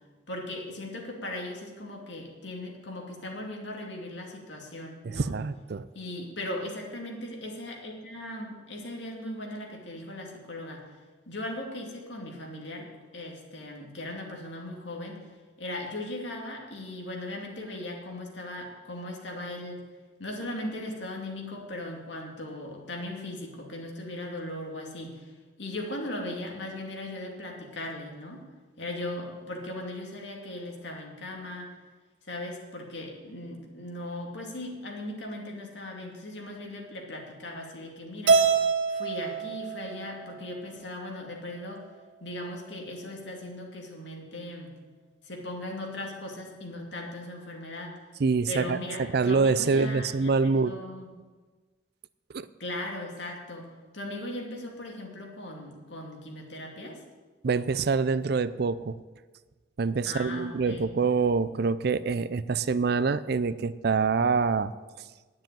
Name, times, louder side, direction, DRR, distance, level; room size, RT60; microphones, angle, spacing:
voice 1, 0.3-5.3 5.9-10.9 11.3-12.9 13.1-15.3 15.6-19.8 20.2-25.3 25.6-28.4 28.8-31.7 32.3-38.5 38.9-41.8 42.2-44.7 45.2-48.0 48.5-51.1 52.6-53.7 53.9-57.0 60.1-60.9, left 1 dB, 75° left, 0 dB, 2.5 m, -38 dB
voice 2, 5.0-5.9 48.2-50.7 52.3-52.5 57.4-59.0 59.8-64.7, right 4 dB, 60° right, 15 dB, 0.5 m, -26 dB
Keyboard (musical), 38.3-40.6, right 5 dB, 85° right, 0.9 m, -25 dB
10.0 x 7.5 x 9.1 m, 1.3 s
head